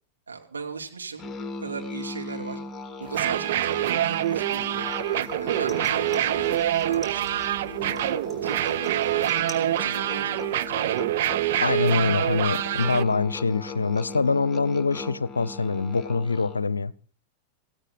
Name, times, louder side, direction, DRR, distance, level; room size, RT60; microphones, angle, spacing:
voice 1, 0.3-1.3 1.6-2.6 3.0-4.9 5.3-6.6 6.8-8.1 8.4-10.8, right 5 dB, 75° right, 2.8 m, -37 dB
Musical instrument, 1.2-16.7, left 4 dB, 15° left, 2.1 m, -39 dB
sound 1, 3.1-13.0, right 13 dB, 55° right, 0.7 m, -26 dB
sound 2, 5.7-7.6 8.0-9.7 10.0-10.6 11.0-11.1, left 1 dB, 10° right, 4.9 m, -48 dB
voice 2, 11.6-16.9, left 4 dB, 75° left, 0.7 m, -24 dB
18.0 x 16.5 x 4.0 m
figure-of-eight pair, 90°, 0 cm